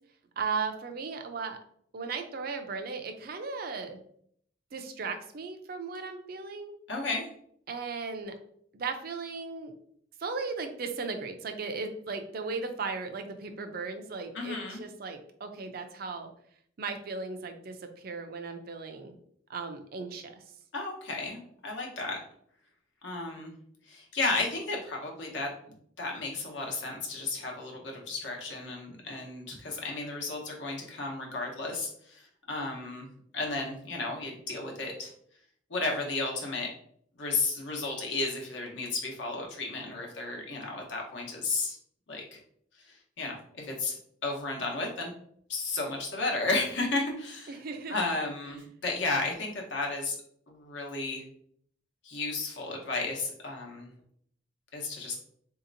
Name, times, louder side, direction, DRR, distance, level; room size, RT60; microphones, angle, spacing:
voice 1, 0.4-1.6 1.9-4.0 4.7-6.7 7.7-8.3 8.7-9.7 10.2-16.3 16.8-19.1 19.5-20.3 47.5-48.0, right 4 dB, 50° right, 6 dB, 0.4 m, -36 dB
voice 2, 6.9-7.2 14.3-14.8 20.7-22.2 23.0-23.5 23.9-25.5 26.0-35.1 35.7-36.7 37.2-41.8 42.1-42.4 42.9-45.1 45.5-47.6 47.9-50.2 50.5-51.2 52.0-53.9 54.7-55.2, left 3 dB, 70° left, 0 dB, 1.0 m, -33 dB
4.1 x 2.8 x 2.6 m, 0.65 s
head